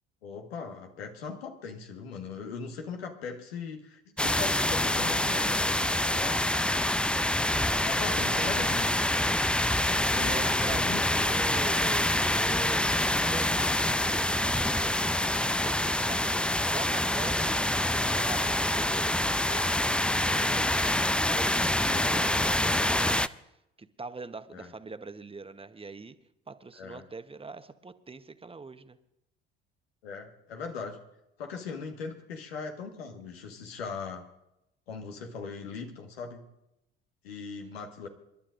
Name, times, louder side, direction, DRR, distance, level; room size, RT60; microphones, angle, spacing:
voice 1, 0.2-6.4 7.8-8.9 10.1-11.0 21.9-22.4 24.5-24.7 26.8-27.0 30.0-31.0 31.4-34.2 34.9-36.4 37.2-38.1, left 5 dB, 85° left, 3 dB, 1.6 m, -39 dB
sound 1, 4.2-23.3, left 1 dB, 5° left, 0.4 m, -26 dB
voice 2, 6.1-6.5 7.9-8.6 10.1-16.2 16.7-20.9 21.2-26.2 26.5-29.0, right 4 dB, 20° right, 10 dB, 1.0 m, -43 dB
28.0 x 11.5 x 2.6 m, 0.84 s
hypercardioid pair, 55°, 30 cm